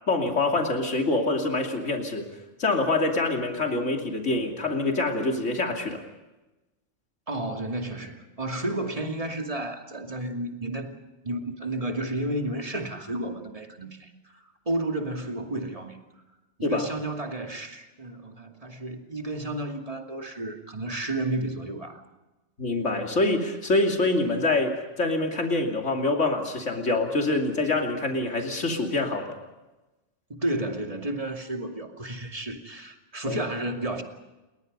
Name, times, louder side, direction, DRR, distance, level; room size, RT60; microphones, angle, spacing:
voice 1, 0.1-2.2 2.6-6.0 16.6-16.9 22.6-29.4 33.3-33.4, left 2 dB, 80° left, 2 dB, 3.2 m, -25 dB
voice 2, 7.3-11.0 11.2-16.0 16.6-22.0 30.3-34.0, right 1 dB, 30° right, 3 dB, 2.6 m, -32 dB
29.0 x 22.0 x 5.4 m, 1.1 s
omnidirectional pair, 1.2 m